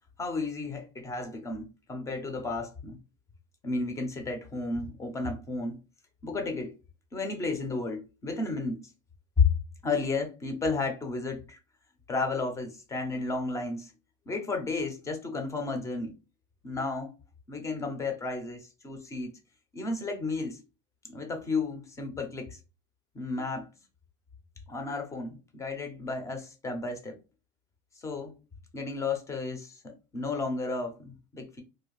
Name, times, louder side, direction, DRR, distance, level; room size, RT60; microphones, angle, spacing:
voice 1, 0.2-3.0 3.6-5.8 6.2-6.7 7.1-8.8 9.8-11.6 12.1-13.9 14.3-16.1 16.6-17.1 17.5-19.3 19.7-20.6 21.0-22.6 23.1-23.7 24.7-27.2 28.0-28.3 28.7-31.6, left 3 dB, 10° left, 0.4 m, -33 dB
2.5 x 2.0 x 3.0 m
supercardioid pair, 145°, 29 cm